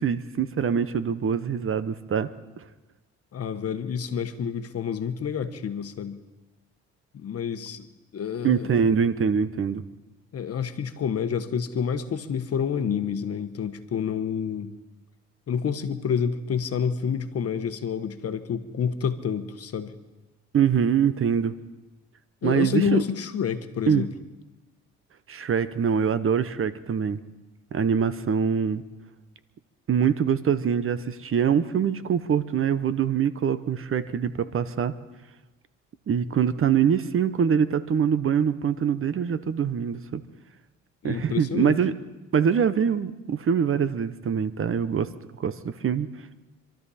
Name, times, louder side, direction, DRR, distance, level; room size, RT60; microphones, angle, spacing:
voice 1, 0.0-2.3 8.4-9.8 20.5-21.5 22.4-23.0 23.9-24.1 25.3-27.2 27.7-28.8 29.9-34.9 36.1-40.2 41.0-41.9 42.3-45.1 45.4-46.1, right 7 dB, 45° right, 14 dB, 0.9 m, -24 dB
voice 2, 3.3-6.2 7.1-7.9 8.1-8.8 10.3-14.7 15.5-19.9 22.4-24.1 41.0-41.8, left 7 dB, 55° left, 9 dB, 1.2 m, -28 dB
26.5 x 13.0 x 4.2 m, 1.1 s
cardioid pair, 90°, 30 cm